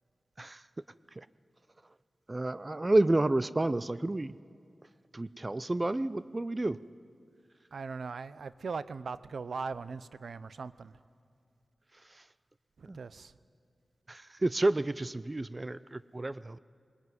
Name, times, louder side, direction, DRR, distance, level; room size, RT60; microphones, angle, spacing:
voice 1, 2.3-4.4 5.1-6.8 11.9-12.3 12.9-13.0 14.1-16.6, right 2 dB, 30° right, 16 dB, 0.5 m, -30 dB
voice 2, 7.7-10.9 12.8-13.3, right 4 dB, 80° right, 16 dB, 0.6 m, -39 dB
20.5 x 20.0 x 9.4 m, 2.4 s
cardioid pair, 50°, 0 cm